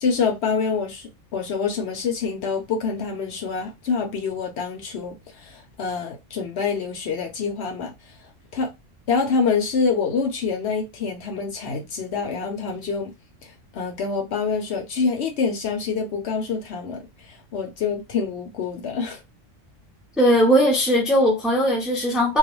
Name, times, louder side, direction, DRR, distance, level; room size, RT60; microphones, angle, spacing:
voice 1, 0.0-5.2 5.4-7.9 8.5-8.7 9.1-13.1 13.7-17.0 17.3-19.2, left 5 dB, 60° left, 0.8 m, -26 dB
voice 2, 20.2-22.4, equal, ahead, 0.5 m, -18 dB
2.4 x 2.2 x 3.0 m
omnidirectional pair, 1.3 m